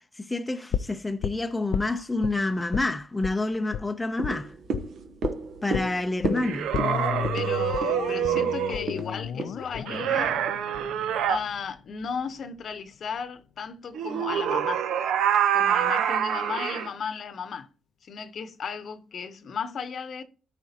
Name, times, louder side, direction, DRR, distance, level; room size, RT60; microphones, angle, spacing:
voice 1, 0.0-4.6 5.6-6.8, left 2 dB, 15° left, 0.5 m, -28 dB
sound 1, 0.7-2.3 2.7-2.9 3.2-3.4 3.7-3.9 4.2-4.4 4.7-4.9 5.2-5.4 5.7-11.7 12.0-12.1, left 8 dB, 70° left, 0.4 m, -33 dB
sound 2, 4.1-10.6 11.0-11.1, right 4 dB, 65° right, 1.0 m, -35 dB
sound 3, 6.4-8.8 9.9-11.4 13.9-16.9, right 9 dB, 80° right, 0.7 m, -26 dB
voice 2, 7.3-10.4 11.3-14.8 15.5-17.7 18.0-20.2, left 6 dB, 55° left, 0.8 m, -35 dB
13.0 x 5.0 x 2.8 m
cardioid pair, 90°, 0 cm